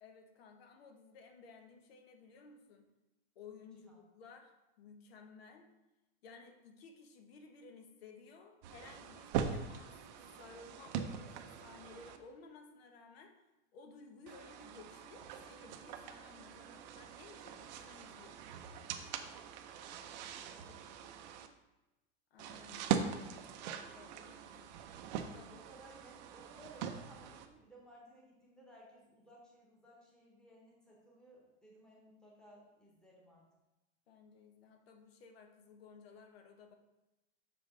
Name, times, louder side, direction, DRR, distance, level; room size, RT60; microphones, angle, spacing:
voice 1, 0.0-2.9 3.3-5.7 6.2-10.0 10.4-13.4 13.7-18.9 22.3-23.4 24.0-24.8 25.2-25.6 34.1-36.8, left 4 dB, 85° left, 5 dB, 1.0 m, -57 dB
sound 1, 8.6-12.2 14.3-21.5 22.4-27.5, right 8 dB, 45° right, 0.5 m, -42 dB
voice 2, 20.4-21.0 25.5-33.5, right 1 dB, 5° left, -4 dB, 1.0 m, -60 dB
6.3 x 5.2 x 3.7 m, 1.0 s
supercardioid pair, 170°, 30 cm